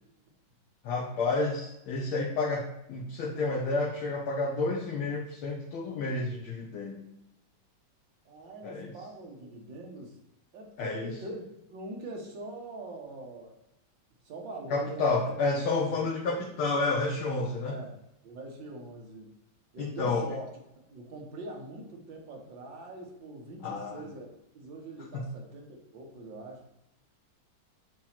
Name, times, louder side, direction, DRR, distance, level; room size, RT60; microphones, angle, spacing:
voice 1, 0.8-7.0 8.6-8.9 10.8-11.1 14.7-17.8 19.8-20.3 23.6-24.0 25.1-25.2, left 3 dB, 80° left, -2 dB, 1.7 m, -30 dB
voice 2, 8.3-10.2 10.5-11.4 11.7-13.6 14.2-16.1 17.6-18.0 18.2-19.3 19.7-20.5 20.9-24.3 24.5-26.6, right 2 dB, 65° right, 0 dB, 1.9 m, -43 dB
7.4 x 3.1 x 5.8 m, 0.88 s
omnidirectional pair, 2.3 m